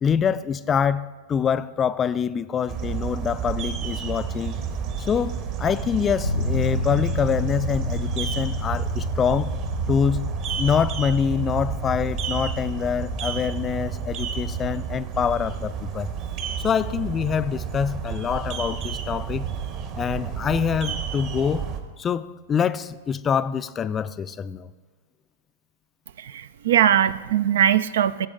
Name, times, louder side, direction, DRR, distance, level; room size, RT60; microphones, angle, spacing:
voice 1, 0.0-4.6 5.0-9.5 9.9-16.1 16.6-19.5 20.0-21.7 22.0-24.7, left 7 dB, 25° left, 0.4 m, -25 dB
sound 1, 2.7-21.8, right 7 dB, 45° right, 1.3 m, -31 dB
sound 2, 6.2-18.7 19.1-19.2, left 3 dB, 85° left, 1.0 m, -32 dB
voice 2, 26.2-28.3, right 10 dB, 65° right, 0.4 m, -20 dB
16.5 x 7.6 x 3.7 m
figure-of-eight pair, 100°, 0 cm